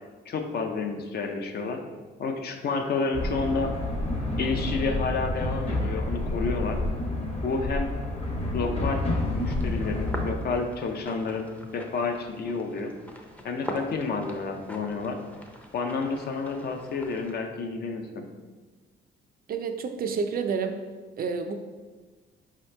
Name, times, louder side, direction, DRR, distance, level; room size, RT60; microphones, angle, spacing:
voice 1, 0.3-1.8 2.2-3.7 4.4-6.8 7.4-7.9 8.5-9.0 9.3-11.4 11.7-12.9 13.4-15.2 15.7-18.2, left 4 dB, 55° left, 4 dB, 0.5 m, -30 dB
sound 1, 3.1-10.3, left 2 dB, 30° left, 0.8 m, -29 dB
sound 2, 9.0-17.3, equal, 5° left, 0.5 m, -42 dB
voice 2, 19.5-20.8 21.2-21.6, right 5 dB, 50° right, 7 dB, 0.4 m, -29 dB
4.9 x 2.9 x 3.2 m, 1.3 s
cardioid pair, 90°, 20 cm